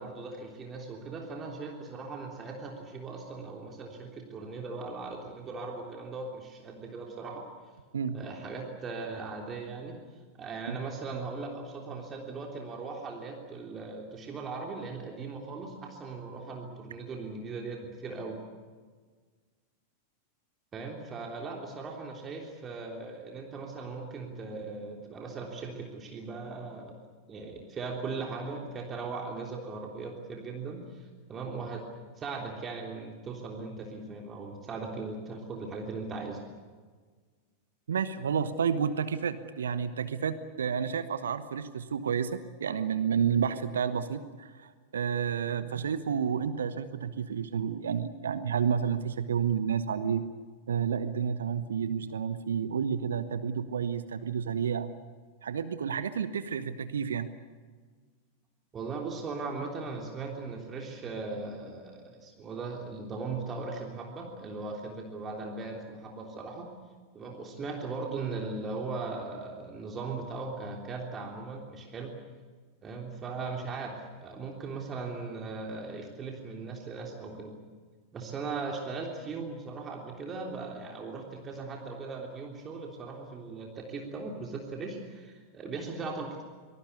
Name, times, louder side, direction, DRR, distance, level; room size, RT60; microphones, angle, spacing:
voice 1, 0.0-7.5 8.1-10.0 10.4-18.4 20.7-27.0 27.3-31.9 32.2-36.4 58.7-66.7 67.1-72.1 72.8-73.9 74.2-77.5 78.1-86.4, right 4 dB, 25° right, 1 dB, 3.4 m, -38 dB
voice 2, 7.9-8.3 10.7-10.8 37.9-50.2 50.7-54.9 55.4-57.3, right 7 dB, 65° right, 12 dB, 1.1 m, -30 dB
25.5 x 19.5 x 8.3 m, 1.5 s
figure-of-eight pair, 90°, 0 cm